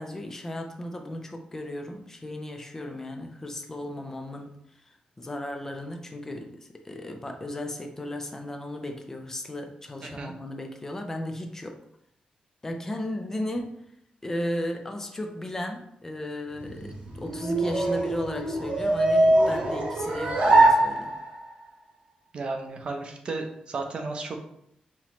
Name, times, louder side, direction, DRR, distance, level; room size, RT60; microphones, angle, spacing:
voice 1, 0.0-4.6 5.2-11.8 12.6-13.7 14.2-21.1, left 1 dB, 20° left, 4 dB, 0.5 m, -35 dB
voice 2, 10.0-10.3 19.4-19.7 22.3-24.4, right 3 dB, 40° right, 4 dB, 0.6 m, -34 dB
sound 1, 16.5-21.5, right 2 dB, 55° right, 1.0 m, -23 dB
5.7 x 3.0 x 2.9 m, 0.74 s
wide cardioid pair, 165°, 3 cm